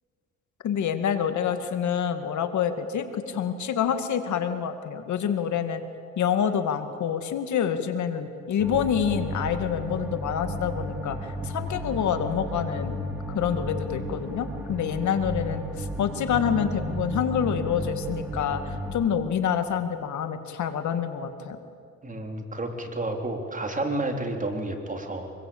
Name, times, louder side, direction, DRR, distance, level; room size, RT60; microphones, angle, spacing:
voice 1, 0.6-5.8 6.2-13.0 13.3-21.6, left 8 dB, 70° left, 8 dB, 2.2 m, -27 dB
sound 1, 8.6-18.9, equal, 5° right, 3.8 m, -33 dB
voice 2, 22.0-25.3, right 2 dB, 25° right, 3 dB, 3.7 m, -30 dB
24.5 x 22.0 x 8.8 m, 2.4 s
cardioid pair, 90°, 30 cm